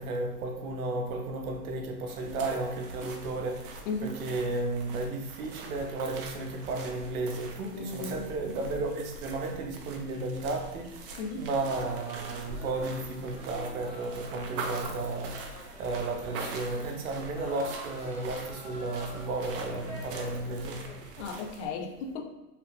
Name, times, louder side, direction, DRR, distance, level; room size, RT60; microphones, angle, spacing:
voice 1, 0.0-21.1, right 2 dB, 60° right, 3 dB, 0.8 m, -34 dB
sound 1, 2.1-21.7, right 3 dB, 40° right, 0.5 m, -44 dB
voice 2, 3.9-4.2 7.7-8.3 11.2-11.5 21.2-22.3, left 3 dB, 50° left, 5 dB, 0.6 m, -35 dB
sound 2, 11.5-21.1, equal, ahead, 0.7 m, -47 dB
3.3 x 2.3 x 3.1 m, 1.0 s
hypercardioid pair, 140°, 47 cm